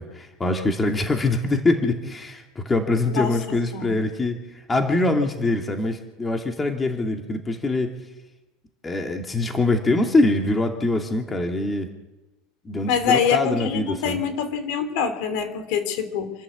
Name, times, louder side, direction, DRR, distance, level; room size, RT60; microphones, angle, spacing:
voice 1, 0.0-4.4 4.7-7.9 8.8-11.9 12.6-14.2, left 2 dB, 15° left, 3 dB, 2.4 m, -23 dB
voice 2, 3.1-4.0 12.9-16.3, left 6 dB, 65° left, 8 dB, 3.8 m, -25 dB
27.5 x 11.5 x 8.3 m, 1.1 s
supercardioid pair, 130°, 0 cm